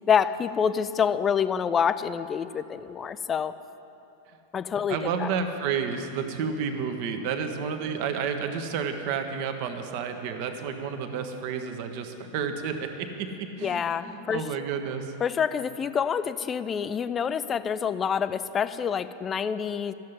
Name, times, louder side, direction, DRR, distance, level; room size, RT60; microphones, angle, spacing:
voice 1, 0.1-3.6 4.5-5.3 13.6-14.4 15.2-19.9, left 7 dB, 25° left, 13 dB, 0.4 m, -27 dB
voice 2, 4.9-15.1, right 6 dB, 45° right, 6 dB, 1.0 m, -31 dB
12.0 x 7.5 x 9.6 m, 2.9 s
figure-of-eight pair, 90°, 0 cm